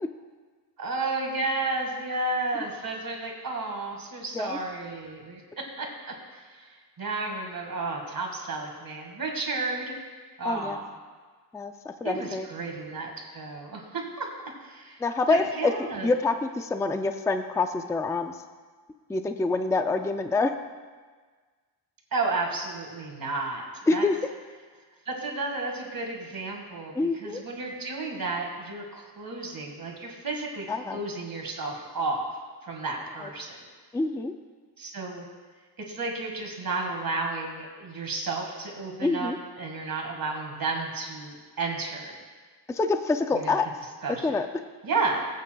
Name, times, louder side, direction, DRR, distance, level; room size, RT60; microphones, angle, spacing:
voice 1, 0.8-5.4 5.8-10.0 10.4-10.9 12.0-14.3 14.6-16.1 22.1-23.6 23.9-24.1 25.1-32.3 32.6-33.6 34.8-35.3 35.9-42.2 43.3-43.6 44.0-44.4 44.8-45.2, right 3 dB, 50° right, 1 dB, 1.9 m, -32 dB
voice 2, 10.4-10.8 11.5-12.5 15.0-15.7 16.0-18.3 19.1-20.5 23.9-24.2 27.0-27.4 30.7-31.0 33.2-33.3 33.9-34.3 39.0-39.4 42.7-43.7 44.2-44.5, left 3 dB, 10° left, 7 dB, 0.3 m, -26 dB
20.5 x 8.5 x 2.3 m, 1.5 s
wide cardioid pair, 150°, 44 cm